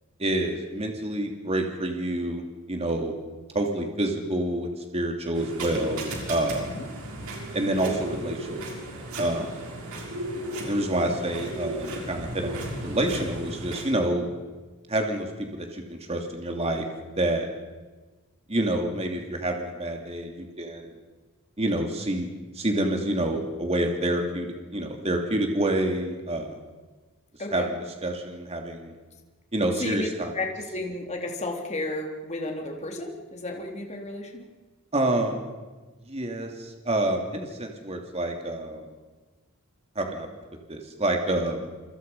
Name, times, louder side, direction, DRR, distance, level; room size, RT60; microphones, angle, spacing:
voice 1, 0.2-2.4 2.7-3.1 3.5-6.7 7.5-8.7 9.2-9.5 10.6-14.2 14.9-16.8 17.2-17.5 18.5-20.9 21.6-22.3 22.5-26.6 27.5-28.9 29.5-30.3 34.9-35.4 36.1-38.8 39.9-40.3 40.7-41.7, right 1 dB, 30° right, 3 dB, 2.9 m, -28 dB
sound 1, 5.3-13.9, right 1 dB, 70° right, 6.6 m, -35 dB
voice 2, 29.8-30.1 30.3-34.4, left 2 dB, 30° left, 1 dB, 3.8 m, -33 dB
28.5 x 25.0 x 5.6 m, 1.3 s
head